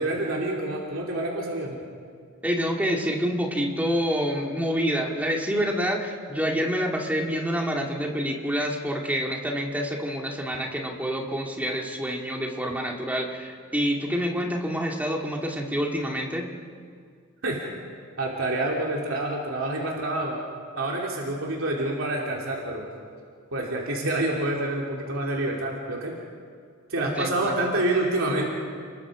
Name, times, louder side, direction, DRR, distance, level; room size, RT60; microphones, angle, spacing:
voice 1, 0.0-1.8 17.4-17.6 18.2-20.4 20.8-22.9 23.5-26.1 26.9-28.5, right 2 dB, 70° right, -2 dB, 3.0 m, -27 dB
voice 2, 2.4-16.5 27.0-27.6, equal, 5° right, 0 dB, 2.2 m, -27 dB
30.0 x 21.0 x 5.0 m, 2.1 s
head